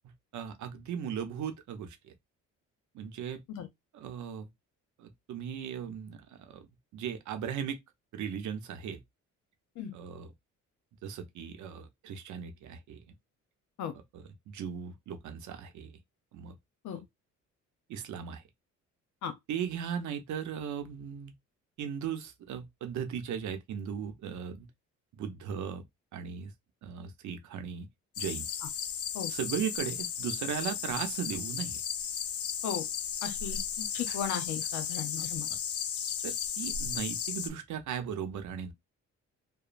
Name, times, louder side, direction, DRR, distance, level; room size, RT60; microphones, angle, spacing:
voice 1, 0.3-2.1 2.9-3.4 3.9-4.5 5.0-7.8 8.1-9.0 9.9-10.3 11.0-13.0 14.1-16.0 16.3-16.6 17.9-18.4 19.5-21.3 21.8-24.7 25.1-25.8 26.1-26.5 26.8-27.9 28.2-28.5 29.3-31.8 34.1-34.2 34.7-34.8 36.2-38.7, right 8 dB, 70° right, 0.7 m, -37 dB
sound 1, 28.1-37.5, left 8 dB, 50° left, 0.5 m, -35 dB
voice 2, 33.2-35.5, left 8 dB, 75° left, 0.8 m, -36 dB
2.9 x 2.1 x 2.5 m
cardioid pair, 90°, 30 cm